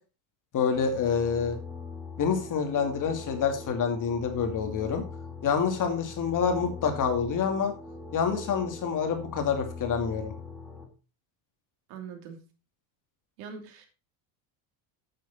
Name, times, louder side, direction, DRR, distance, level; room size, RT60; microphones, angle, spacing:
voice 1, 0.5-1.6 2.2-5.0 5.4-7.7 8.1-10.3, left 6 dB, 40° left, 5 dB, 2.5 m, -27 dB
sound 1, 0.7-10.8, left 4 dB, ahead, 2.3 m, -42 dB
voice 2, 11.9-12.4 13.4-13.9, right 6 dB, 70° right, 5 dB, 3.0 m, -42 dB
9.0 x 8.3 x 4.3 m, 0.33 s
supercardioid pair, 125°, 49 cm